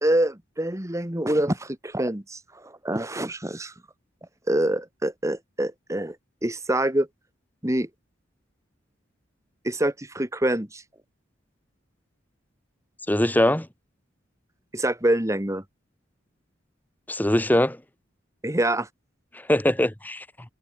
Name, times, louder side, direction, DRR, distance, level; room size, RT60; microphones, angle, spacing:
voice 1, 0.0-3.7 4.5-6.1 6.4-7.1 7.6-7.9 9.6-10.8 14.7-15.6 18.4-18.9, right 1 dB, 15° right, 1.8 m, -25 dB
voice 2, 13.1-13.7 17.1-17.8 19.3-20.2, left 1 dB, 10° left, 1.4 m, -22 dB
head